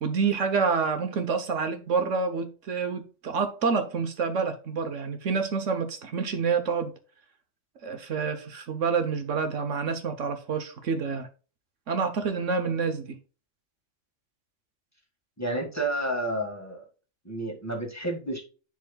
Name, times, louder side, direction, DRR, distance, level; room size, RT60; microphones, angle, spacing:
voice 1, 0.0-6.9 7.8-11.3 11.9-13.2, right 5 dB, 70° right, 1.3 m, -28 dB
voice 2, 15.4-16.9 17.2-18.4, right 1 dB, 10° left, 1.9 m, -30 dB
11.0 x 4.7 x 2.3 m
omnidirectional pair, 1.3 m